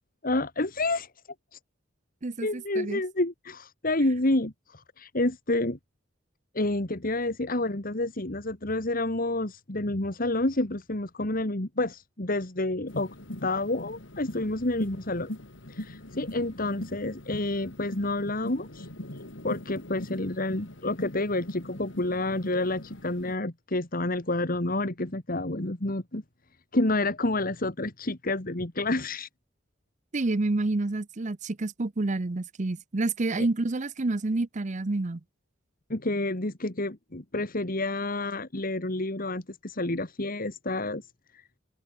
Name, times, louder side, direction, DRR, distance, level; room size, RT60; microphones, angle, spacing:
voice 1, 0.2-1.1 1.5-1.6 2.4-5.8 6.5-13.1 13.4-15.3 15.7-18.9 19.4-26.2 26.7-29.3 33.4-33.5 35.9-41.1 41.3-41.4, left 2 dB, 50° left, 2.4 m, -29 dB
voice 2, 2.2-3.0 30.1-35.2, right 2 dB, 40° right, 0.7 m, -28 dB
sound 1, 12.9-23.3, left 1 dB, 85° left, 3.7 m, -41 dB
head